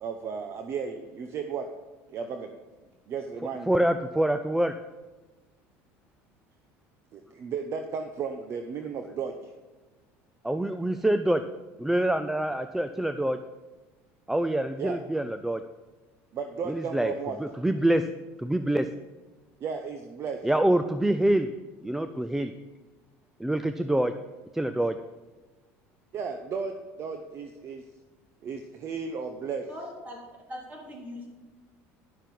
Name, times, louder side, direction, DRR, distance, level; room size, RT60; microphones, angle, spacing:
voice 1, 0.0-1.7 2.1-2.5 3.1-3.8 7.1-9.5 14.8-15.0 16.3-17.4 19.6-20.4 26.1-27.8 28.4-29.7, right 6 dB, 45° right, 6 dB, 0.8 m, -34 dB
voice 2, 3.7-4.8 10.4-11.4 11.8-13.4 14.3-15.6 16.7-17.1 17.4-18.1 18.4-18.9 20.4-21.5 21.8-22.5 23.4-24.1 24.5-25.0, right 1 dB, 5° right, 9 dB, 0.4 m, -25 dB
voice 3, 29.7-30.2 30.5-31.3, left 1 dB, 25° right, -1 dB, 3.6 m, -40 dB
11.0 x 7.3 x 5.4 m, 1.2 s
supercardioid pair, 110°, 6 cm